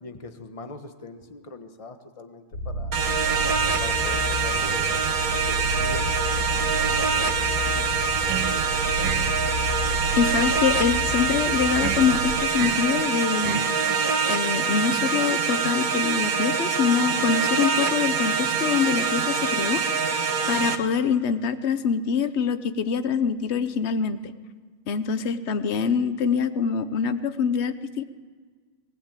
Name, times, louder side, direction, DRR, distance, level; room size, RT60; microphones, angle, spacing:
voice 1, 0.0-3.0 3.8-7.8 8.5-9.2, left 2 dB, 20° left, 7 dB, 1.1 m, -42 dB
sound 1, 2.5-12.3, left 1 dB, 80° left, 4.2 m, -31 dB
sound 2, 2.9-20.8, right 5 dB, 45° right, 1.5 m, -25 dB
sound 3, 8.3-8.7 9.0-9.4 11.8-12.1 12.6-12.9 13.4-13.8, right 9 dB, 90° right, 1.8 m, -31 dB
voice 2, 10.2-13.7 14.3-19.8 20.1-24.3 24.9-28.0, left 6 dB, 60° left, 12 dB, 0.7 m, -25 dB
20.0 x 19.0 x 9.0 m, 1.5 s
omnidirectional pair, 2.3 m